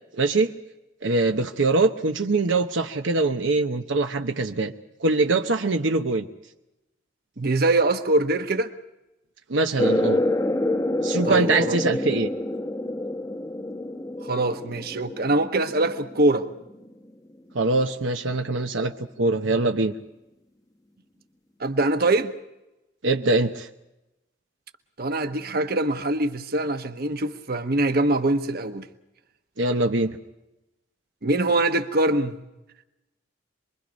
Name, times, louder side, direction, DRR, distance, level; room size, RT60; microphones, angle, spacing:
voice 1, 0.2-0.5 1.0-4.7 5.0-6.3 9.5-10.2 11.0-12.3 17.5-19.9 23.0-23.7 29.6-30.1, right 3 dB, 75° right, 0.9 m, -23 dB
voice 2, 7.4-8.7 11.3-11.8 14.2-16.5 21.6-22.3 25.0-28.9 31.2-32.4, right 2 dB, 50° right, 1.2 m, -23 dB
sound 1, 9.8-16.9, left 1 dB, 20° left, 0.9 m, -28 dB
27.0 x 22.5 x 5.2 m
head